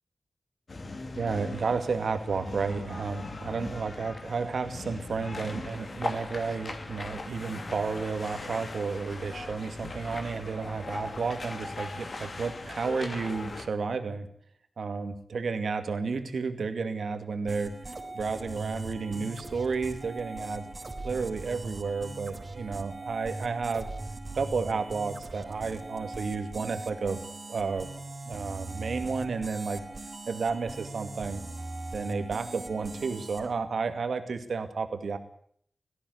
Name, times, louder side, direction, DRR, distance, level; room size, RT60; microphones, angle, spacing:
sound 1, 0.7-13.7, left 2 dB, 55° left, 2.8 m, -39 dB
voice 1, 1.1-14.3 14.8-17.7 18.1-20.6 21.0-23.9 24.4-27.2 27.5-27.9 28.3-29.8 30.3-31.4 31.9-35.2, right 4 dB, 85° right, 8 dB, 2.4 m, -32 dB
sound 2, 17.5-33.5, right 2 dB, 45° right, 4.8 m, -40 dB
18.5 x 14.5 x 9.6 m, 0.63 s
wide cardioid pair, 75°, 0 cm